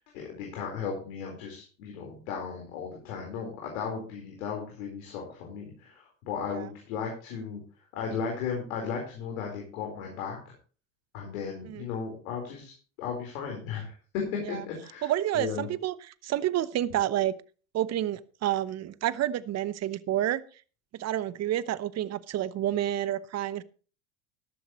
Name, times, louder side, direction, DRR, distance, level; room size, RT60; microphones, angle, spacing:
voice 1, 0.1-7.6 7.9-10.4 11.1-15.6, left 6 dB, 75° left, 0 dB, 4.3 m, -35 dB
voice 2, 15.0-17.3 17.7-20.4 20.9-23.6, right 12 dB, 40° right, 17 dB, 0.9 m, -29 dB
14.0 x 12.0 x 3.0 m, 0.37 s
hypercardioid pair, 75°, 40 cm